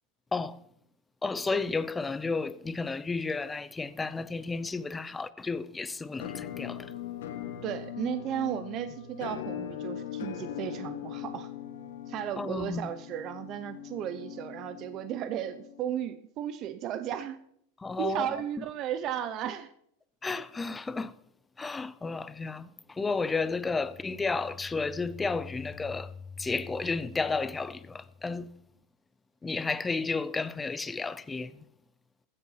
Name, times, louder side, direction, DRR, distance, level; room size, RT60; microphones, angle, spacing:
voice 1, 1.2-6.9 12.4-12.9 17.8-18.6 20.2-21.2 21.6-28.5 29.4-31.7, left 4 dB, 10° left, 0.5 m, -32 dB
Musical instrument, 6.2-16.0, left 10 dB, 90° left, 1.4 m, -40 dB
voice 2, 7.6-11.5 12.1-17.4 18.0-19.7, right 10 dB, 35° right, 0.7 m, -34 dB
sound 1, 23.1-28.7, left 5 dB, 35° left, 1.2 m, -48 dB
15.5 x 6.6 x 5.7 m
supercardioid pair, 160°, 0 cm